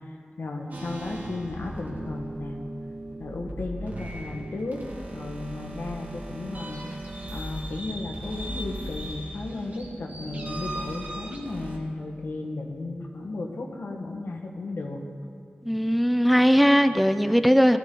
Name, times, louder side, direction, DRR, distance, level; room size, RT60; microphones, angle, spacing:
voice 1, 0.4-2.6 3.2-4.8 5.1-6.8 7.3-15.0, left 2 dB, 85° left, 1 dB, 1.5 m, -34 dB
sound 1, 0.7-11.8, right 1 dB, 45° right, 2.1 m, -37 dB
voice 2, 15.7-17.8, equal, ahead, 10 dB, 0.5 m, -19 dB
17.0 x 13.0 x 3.8 m, 2.4 s
wide cardioid pair, 80°, 4 cm